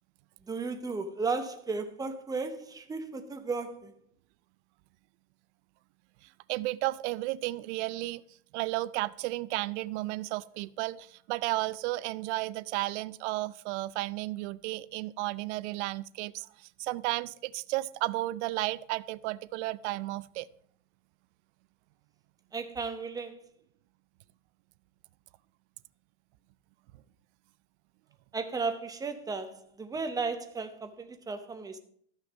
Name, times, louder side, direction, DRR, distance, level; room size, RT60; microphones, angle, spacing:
voice 1, 0.4-3.9 22.5-23.4 28.3-31.8, right 4 dB, 10° right, 0.7 m, -34 dB
voice 2, 6.2-8.2 8.5-20.5, right 18 dB, 70° right, 0.5 m, -33 dB
13.0 x 6.4 x 5.2 m
supercardioid pair, 155°, 36 cm